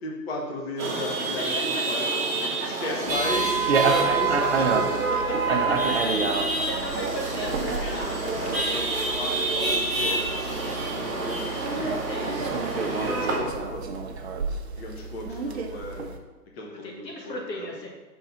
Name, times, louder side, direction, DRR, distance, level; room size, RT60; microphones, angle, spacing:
voice 1, 0.0-2.2 2.6-5.3 6.1-6.3 8.2-10.5 10.9-12.0 12.4-12.5 13.0-13.9 14.8-16.1 16.5-17.8, left 1 dB, 40° left, -1 dB, 0.8 m, -35 dB
Chatter / Vehicle horn car horn honking / Traffic noise roadway noise, 0.8-13.4, right 3 dB, 10° right, 0.8 m, -27 dB
voice 2, 1.4-1.8 2.6-2.7 5.5-6.2 6.7-8.5 12.1-12.7 16.7-17.9, equal, 85° left, -1 dB, 2.0 m, -36 dB
sound 1, 3.1-16.2, right 4 dB, 45° right, 0.6 m, -30 dB
5.4 x 3.6 x 5.6 m, 1.2 s
hypercardioid pair, 155°, 49 cm